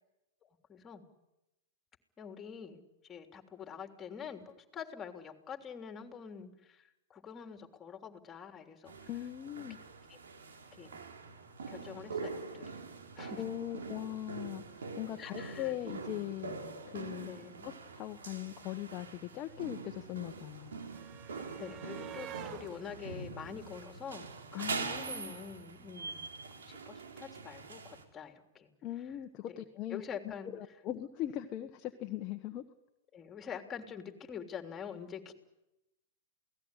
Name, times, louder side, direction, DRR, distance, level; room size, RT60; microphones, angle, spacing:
voice 1, 0.4-1.0 2.2-2.8 3.1-9.1 10.1-10.2 10.7-11.0 11.7-12.8 13.2-13.4 15.2-15.7 17.2-17.7 21.6-26.3 26.7-28.7 29.5-29.6 29.9-30.5 33.1-35.3, left 7 dB, 20° left, 5 dB, 3.4 m, -46 dB
sound 1, 8.9-28.0, right 4 dB, 80° right, 4.0 m, -44 dB
voice 2, 9.1-9.8 13.3-16.5 16.9-17.3 17.6-20.7 24.5-25.3 28.8-32.6, left 13 dB, 35° left, 5 dB, 1.4 m, -40 dB
sound 2, 18.1-18.2 18.4-24.6 25.8-25.9 26.2-26.3, right 11 dB, 40° right, 1.0 m, -51 dB
28.5 x 18.5 x 10.0 m, 0.94 s
hypercardioid pair, 115°, 0 cm